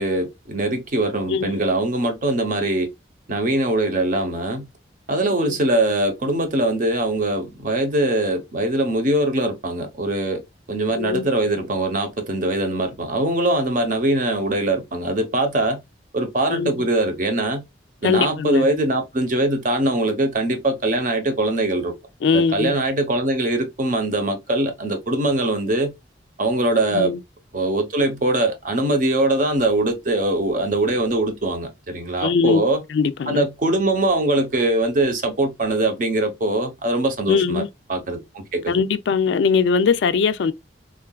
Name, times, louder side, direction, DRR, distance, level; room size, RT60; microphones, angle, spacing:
voice 1, 0.0-2.9 3.3-4.7 5.1-10.4 10.7-15.8 16.1-17.6 18.0-21.9 22.3-25.9 26.4-27.2 27.5-32.8 33.3-37.6 37.9-38.8, right 1 dB, 45° right, 0.7 m, -22 dB
voice 2, 1.3-1.6 5.4-5.5 11.0-11.2 16.5-16.7 18.0-18.6 22.2-22.7 26.9-27.2 32.2-32.6 32.9-33.4 37.3-37.7 38.7-40.5, left 5 dB, 75° left, 0.3 m, -20 dB
3.6 x 2.3 x 2.2 m
head